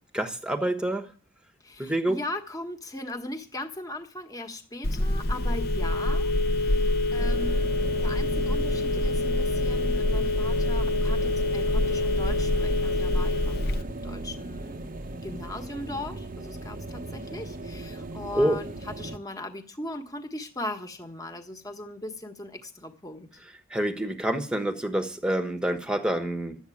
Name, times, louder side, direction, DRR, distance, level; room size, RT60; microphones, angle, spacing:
voice 1, 0.1-1.1 1.8-2.2 18.3-18.6 23.7-26.6, right 1 dB, 5° right, 9 dB, 1.2 m, -27 dB
voice 2, 1.6-7.7 8.0-23.4, left 1 dB, 15° left, 5 dB, 1.4 m, -39 dB
Telephone, 4.8-13.8, left 1 dB, 45° left, 0.9 m, -25 dB
sound 1, 7.2-19.2, right 2 dB, 40° right, 0.8 m, -37 dB
12.0 x 8.2 x 9.8 m, 0.40 s
head